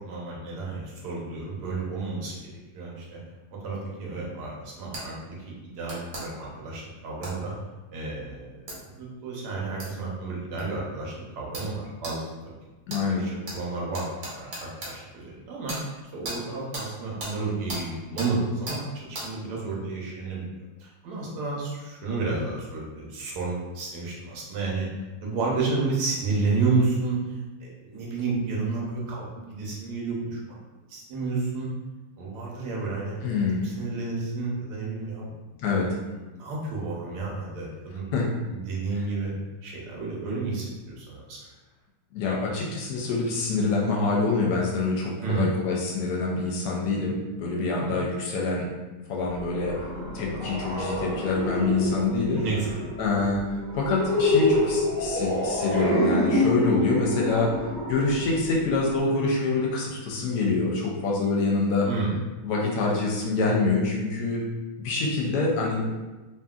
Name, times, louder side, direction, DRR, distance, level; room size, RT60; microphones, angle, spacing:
voice 1, 0.0-3.2 3.5-7.5 7.9-12.6 13.0-20.5 20.8-24.9 25.2-30.6 30.9-31.7 32.2-33.2 33.6-35.3 36.4-38.0 38.5-39.3 39.6-41.4 45.2-45.5 47.8-47.9 52.4-52.7 61.8-62.1, right 3 dB, 80° right, -4 dB, 1.2 m, -31 dB
sound 1, 4.9-5.1 5.9-6.2 7.2-7.4 8.7-8.8 9.8-9.9 10.6-10.7 11.5-11.7 12.0-12.2 12.9-13.0 13.5-13.6 13.9-14.9 15.7-15.8 16.2-16.4 16.7-16.9 17.2-17.3 17.7-17.8 18.2-18.3 18.7-18.8 19.1-19.3, right 1 dB, 55° right, 1.0 m, -35 dB
voice 2, 12.9-13.2 33.2-33.7 35.6-35.9 38.1-38.3 42.1-48.7 49.1-49.8 50.1-52.4 53.0-61.9 62.4-64.4 64.8-65.8, left 3 dB, 75° left, -2 dB, 1.0 m, -26 dB
sound 2, 49.3-59.0, left 1 dB, 40° right, 0.6 m, -27 dB
2.8 x 2.6 x 2.3 m, 1.2 s
omnidirectional pair, 1.8 m